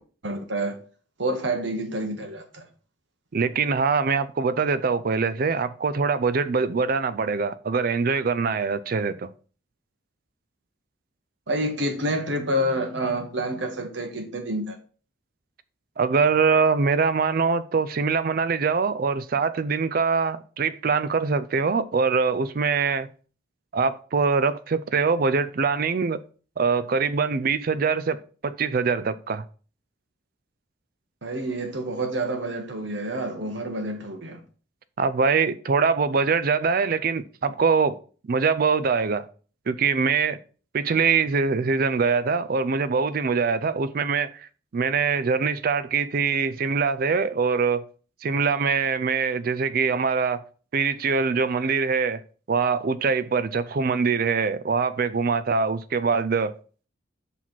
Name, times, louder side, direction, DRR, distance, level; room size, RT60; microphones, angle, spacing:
voice 1, 0.2-0.8 1.2-2.6 11.5-14.8 31.2-34.4, right 1 dB, 65° right, 1.3 m, -28 dB
voice 2, 3.3-9.3 16.0-23.1 23.7-26.2 26.6-29.4 35.0-38.0 38.3-39.3 39.7-40.4 40.7-47.9 48.2-50.4 50.7-52.2 52.5-56.5, right 5 dB, 45° right, 0.4 m, -23 dB
5.8 x 4.1 x 4.6 m
head